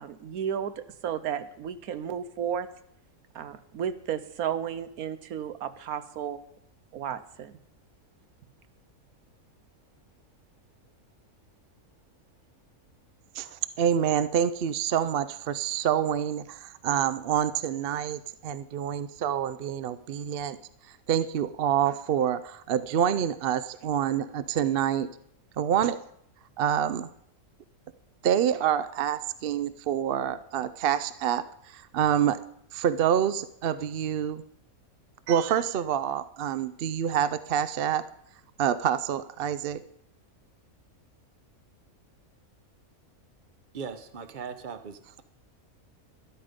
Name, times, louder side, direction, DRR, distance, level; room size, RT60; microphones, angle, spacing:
voice 1, 0.0-2.7 3.3-6.4 6.9-7.5, right 8 dB, 80° right, 13 dB, 1.3 m, -33 dB
voice 2, 13.4-20.6 21.1-25.1 25.6-26.0 26.6-27.1 28.2-32.4 32.7-34.4 35.3-38.0 38.6-39.8, right 9 dB, 60° right, 14 dB, 0.6 m, -27 dB
voice 3, 43.7-45.2, right 6 dB, 40° right, 11 dB, 0.9 m, -39 dB
12.5 x 12.0 x 5.1 m, 0.70 s
omnidirectional pair, 1.5 m